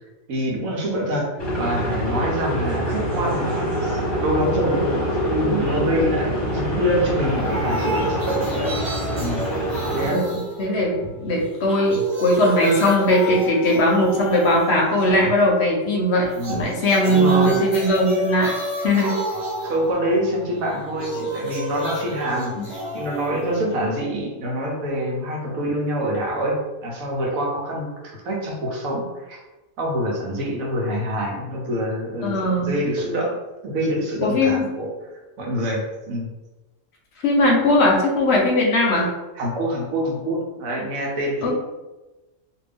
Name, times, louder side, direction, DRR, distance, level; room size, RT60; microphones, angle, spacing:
voice 1, 0.3-1.3 1.6-8.7 9.2-9.4 9.9-10.2 16.4-16.6 17.1-17.6 19.6-29.4 29.8-33.4 33.6-34.9 35.4-36.3 39.4-41.5, equal, 85° right, -1 dB, 1.2 m, -26 dB
sound 1, 1.4-10.1, equal, 20° left, 0.9 m, -25 dB
sound 2, 7.3-11.2 11.5-15.3 16.3-24.3, right 1 dB, 55° right, 1.2 m, -31 dB
voice 2, 9.9-18.5 18.8-19.2 22.6-22.7 32.2-32.8 34.2-34.6 37.2-39.1 41.4-41.5, left 1 dB, 60° left, -1 dB, 0.8 m, -19 dB
2.6 x 2.5 x 3.4 m, 1.1 s
omnidirectional pair, 1.4 m